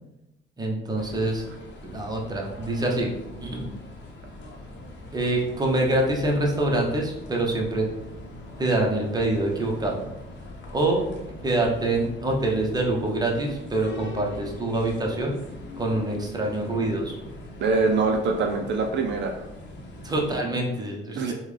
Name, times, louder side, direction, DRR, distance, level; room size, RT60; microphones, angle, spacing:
voice 1, 0.6-1.4 1.8-3.1 3.4-3.7 5.1-7.9 8.6-10.1 10.7-11.1 11.4-15.3 15.8-17.1 20.0-21.3, right 2 dB, 20° right, -1 dB, 0.8 m, -25 dB
sound 1, 1.0-20.4, left 1 dB, 65° left, 0.7 m, -42 dB
voice 2, 17.6-19.4 21.2-21.3, right 3 dB, 65° right, 3 dB, 0.4 m, -24 dB
3.5 x 2.2 x 3.2 m, 0.93 s
cardioid pair, 90°, 20 cm